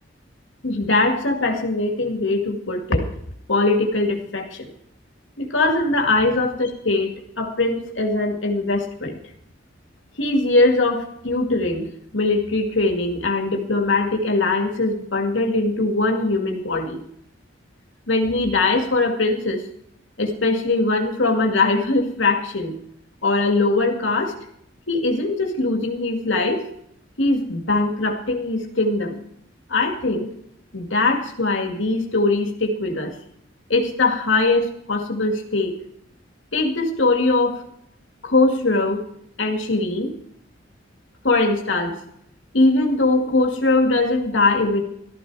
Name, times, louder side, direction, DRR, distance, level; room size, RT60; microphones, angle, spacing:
voice 1, 0.6-3.1 3.5-4.7 5.4-9.2 10.2-11.9 12.1-17.0 18.1-19.6 20.2-22.7 23.2-24.3 24.9-26.6 27.2-29.2 29.7-30.3 30.7-33.1 33.7-35.7 36.5-37.6 38.2-39.1 39.4-40.1 41.2-42.0 42.5-44.8, left 2 dB, 85° left, 4 dB, 2.2 m, -21 dB
14.5 x 13.5 x 4.8 m, 0.70 s
head